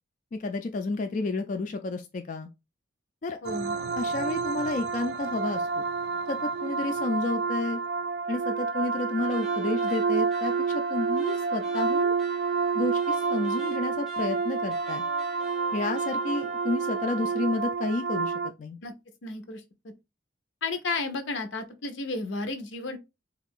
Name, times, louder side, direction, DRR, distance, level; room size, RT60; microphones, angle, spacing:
voice 1, 0.3-2.5 3.2-3.4 4.0-5.8 6.3-7.8 8.3-12.1 12.7-15.0 15.7-18.3 18.6-18.8, left 3 dB, 45° left, 0.3 m, -31 dB
voice 2, 3.4-3.7 18.8-18.9 19.2-19.9 20.6-23.0, left 3 dB, 85° left, 0.7 m, -33 dB
sound 1, 3.4-18.5, right 5 dB, 60° right, 0.3 m, -29 dB
sound 2, 9.3-17.5, left 1 dB, ahead, 0.6 m, -48 dB
3.4 x 2.4 x 3.5 m
head